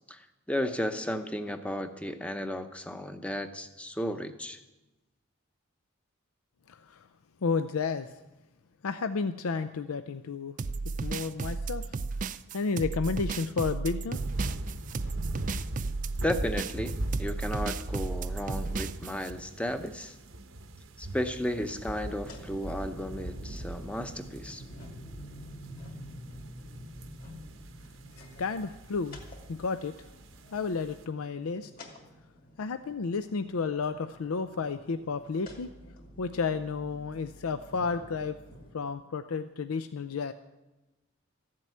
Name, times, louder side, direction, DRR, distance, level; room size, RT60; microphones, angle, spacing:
voice 1, 0.1-4.6 16.2-20.1 21.0-24.6, left 1 dB, 5° left, 8 dB, 0.7 m, -34 dB
voice 2, 6.7-7.1 7.4-8.2 8.8-10.6 10.8-12.0 12.5-14.2 15.1-15.2 28.2-29.2 29.5-30.1 30.5-31.7 32.6-35.7 36.2-38.4 38.7-40.3, left 4 dB, 90° left, 11 dB, 0.5 m, -32 dB
sound 1, 10.6-19.3, right 4 dB, 35° right, 0.4 m, -34 dB
sound 2, 14.1-31.0, right 1 dB, 70° right, 0.9 m, -40 dB
sound 3, 21.8-38.7, equal, 40° left, 2.3 m, -49 dB
14.5 x 7.6 x 9.4 m, 1.1 s
head